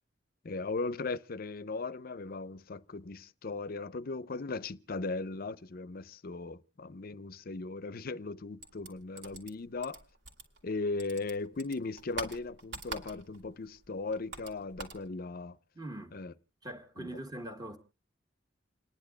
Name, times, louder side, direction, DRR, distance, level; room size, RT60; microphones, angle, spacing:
voice 1, 0.4-10.0 10.6-15.6 16.1-16.3 17.0-17.1, left 3 dB, 50° left, 0.6 m, -37 dB
sound 1, 8.6-10.7 11.0-13.5 13.8-15.0, right 3 dB, 75° right, 2.7 m, -44 dB
voice 2, 15.7-16.2 16.6-17.8, right 1 dB, 20° right, 1.7 m, -42 dB
29.5 x 10.5 x 2.3 m
head